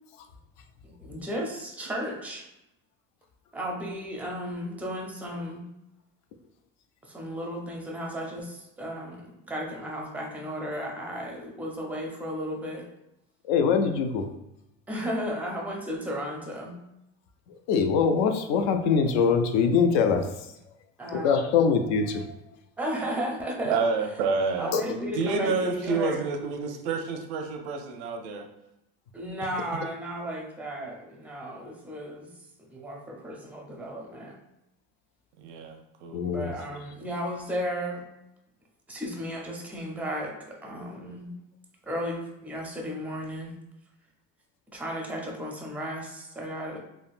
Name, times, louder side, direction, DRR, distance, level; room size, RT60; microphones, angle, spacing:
voice 1, 0.8-2.5 3.5-5.7 7.0-12.8 14.9-16.8 21.0-21.5 22.8-23.8 24.6-26.2 29.1-32.3 32.7-34.4 36.3-38.1 38.9-41.4 41.8-43.6 44.7-46.8, equal, 5° right, 0 dB, 0.5 m, -34 dB
voice 2, 13.5-14.2 17.7-20.3 21.2-22.2 24.7-24.8 36.1-36.5, left 6 dB, 75° left, 7 dB, 0.5 m, -23 dB
voice 3, 23.6-28.5 35.4-36.2, right 4 dB, 90° right, 5 dB, 0.6 m, -29 dB
3.5 x 2.1 x 2.4 m, 0.90 s
cardioid pair, 125°, 33 cm